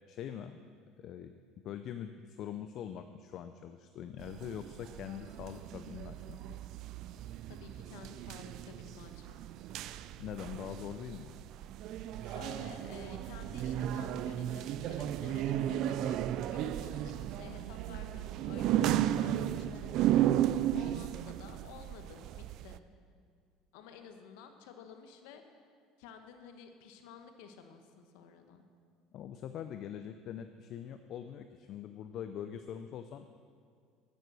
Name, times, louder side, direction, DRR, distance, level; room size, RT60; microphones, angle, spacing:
voice 1, 0.1-0.6 1.0-1.3 1.6-6.4 10.2-11.3 29.1-33.3, left 9 dB, 50° left, 8 dB, 0.5 m, -43 dB
sound 1, 4.2-22.8, right 12 dB, 55° right, 0.4 m, -34 dB
voice 2, 7.5-9.4 12.2-16.2 16.5-22.8 23.7-25.4 26.0-28.7, left 7 dB, 85° left, 6 dB, 1.1 m, -52 dB
10.5 x 9.5 x 6.3 m, 2.1 s
cardioid pair, 130°, 0 cm